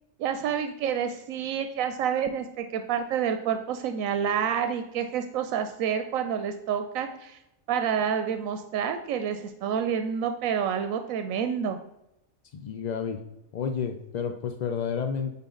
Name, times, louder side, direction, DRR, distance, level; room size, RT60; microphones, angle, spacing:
voice 1, 0.2-7.4 7.7-11.8, right 8 dB, 85° right, 8 dB, 1.0 m, -28 dB
voice 2, 12.5-13.2 13.5-15.3, left 6 dB, 70° left, 6 dB, 0.4 m, -30 dB
8.9 x 4.2 x 3.7 m, 0.86 s
omnidirectional pair, 1.4 m